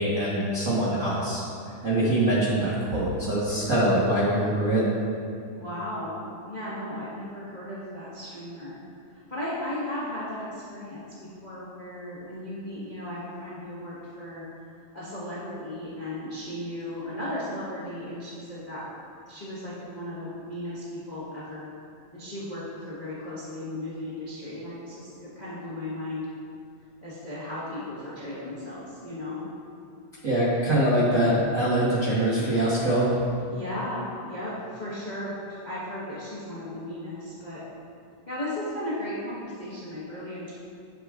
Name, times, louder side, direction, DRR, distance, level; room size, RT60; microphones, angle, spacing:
voice 1, 0.0-1.4 1.8-4.8 30.2-33.1, right 1 dB, 70° right, -9 dB, 0.7 m, -23 dB
voice 2, 5.5-8.8 9.1-14.4 14.9-18.8 19.3-21.7 22.1-26.3 27.0-29.4 33.5-37.6 38.3-40.5, left 1 dB, 85° left, -10 dB, 0.4 m, -36 dB
11.0 x 7.0 x 2.5 m, 2.4 s
omnidirectional pair, 3.5 m